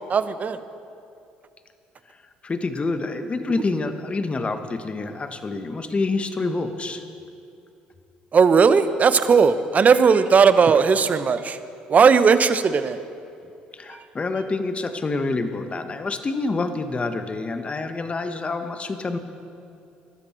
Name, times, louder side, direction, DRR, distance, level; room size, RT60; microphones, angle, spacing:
voice 1, 0.1-0.6 8.3-11.6 11.9-13.0, right 5 dB, 40° right, 12 dB, 0.9 m, -17 dB
voice 2, 2.4-7.0 13.8-19.2, left 3 dB, 30° left, 8 dB, 1.4 m, -27 dB
21.5 x 13.0 x 4.6 m, 2.6 s
hypercardioid pair, 60°, 4 cm